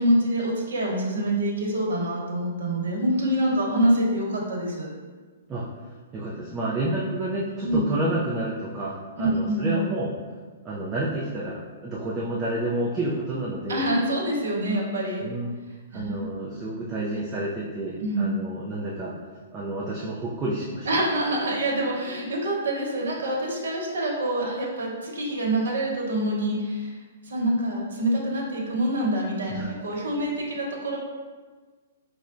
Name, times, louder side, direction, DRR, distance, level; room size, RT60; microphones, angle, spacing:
voice 1, 0.0-4.9 7.6-7.9 9.2-9.7 13.7-15.2 15.9-16.3 18.0-18.2 20.9-26.9 27.2-31.0, right 1 dB, 85° right, -3 dB, 0.9 m, -26 dB
voice 2, 6.1-10.2 10.6-13.8 15.2-15.6 15.9-19.1 19.5-20.9 29.5-29.7, right 1 dB, 10° right, -6 dB, 0.3 m, -29 dB
5.5 x 2.0 x 2.5 m, 1.4 s
hypercardioid pair, 175°, 0 cm